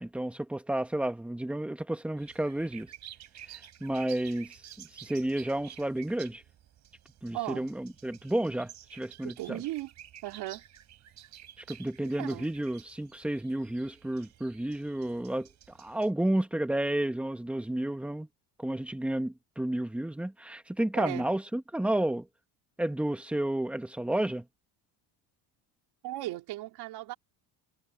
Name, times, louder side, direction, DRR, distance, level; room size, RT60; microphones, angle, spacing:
voice 1, 0.0-2.9 3.5-6.4 7.2-9.6 11.6-15.5 15.8-18.3 18.6-22.3 22.8-24.4, right 1 dB, 5° right, 1.2 m, -31 dB
sound 1, 2.2-16.1, right 11 dB, 40° right, 3.2 m, -52 dB
voice 2, 7.3-7.7 9.2-9.9 10.2-10.6 12.2-12.5 21.0-21.3 26.0-27.1, right 17 dB, 60° right, 3.8 m, -36 dB
cardioid pair, 165°, 43 cm